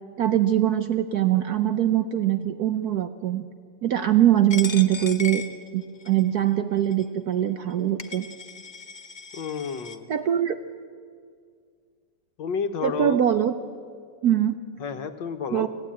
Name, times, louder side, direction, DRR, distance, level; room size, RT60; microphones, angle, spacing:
voice 1, 0.2-3.4 3.8-5.4 5.7-8.3 10.1-10.6 12.8-13.5 14.2-14.6 15.5-15.7, right 11 dB, 65° right, 10 dB, 1.0 m, -22 dB
Coin (dropping), 4.5-6.3 6.9-7.0 7.7-7.8 8.0-10.0, left 4 dB, 45° left, 0.6 m, -37 dB
voice 2, 9.3-10.1 12.4-13.2 14.8-15.7, left 6 dB, 65° left, 8 dB, 1.7 m, -30 dB
25.5 x 15.0 x 8.7 m, 2.1 s
omnidirectional pair, 2.2 m